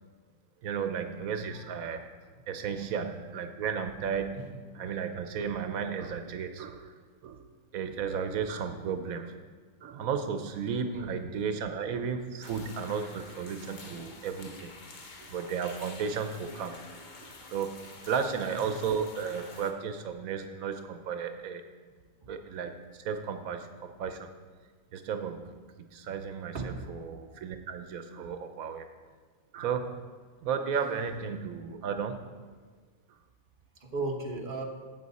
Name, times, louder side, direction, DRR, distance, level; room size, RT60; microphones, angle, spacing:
voice 1, 0.6-2.1 2.5-4.5 4.8-6.9 7.2-9.3 9.8-14.8 15.3-16.8 17.2-21.6 22.3-24.3 24.9-25.6 25.9-28.9 29.5-30.0 30.4-32.3 33.1-33.2, right 6 dB, 85° right, 7 dB, 1.2 m, -34 dB
voice 2, 10.8-11.2 18.5-18.6 22.2-22.3 26.5-26.8 33.8-34.6, right 3 dB, 40° right, 1 dB, 1.4 m, -36 dB
sound 1, 12.4-19.7, left 3 dB, 40° left, 1.0 m, -48 dB
13.0 x 8.3 x 4.1 m, 1.5 s
omnidirectional pair, 1.4 m